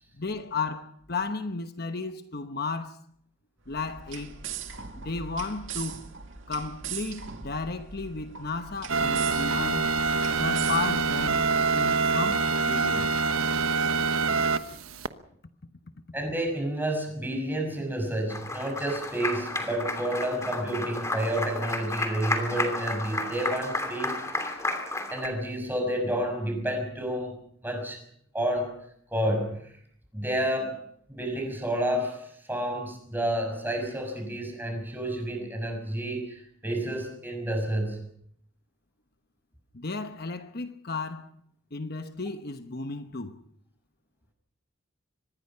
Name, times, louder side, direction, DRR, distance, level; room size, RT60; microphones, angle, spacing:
voice 1, 0.2-3.0 3.7-4.4 5.0-6.0 6.5-9.9 10.3-11.4 11.7-13.2 39.7-41.3 41.7-43.4, left 4 dB, 50° left, 1.1 m, -34 dB
sound 1, 3.6-11.8, right 7 dB, 65° right, 2.4 m, -40 dB
sound 2, 8.9-15.1, right 4 dB, 85° right, 1.2 m, -25 dB
voice 2, 16.1-24.2 25.1-27.3 27.6-28.0 28.3-28.8 29.1-29.7 30.1-30.8 31.1-38.0, right 1 dB, 10° right, 6.2 m, -30 dB
Applause, 18.3-25.3, left 2 dB, 15° left, 2.9 m, -32 dB
25.0 x 20.5 x 5.7 m
head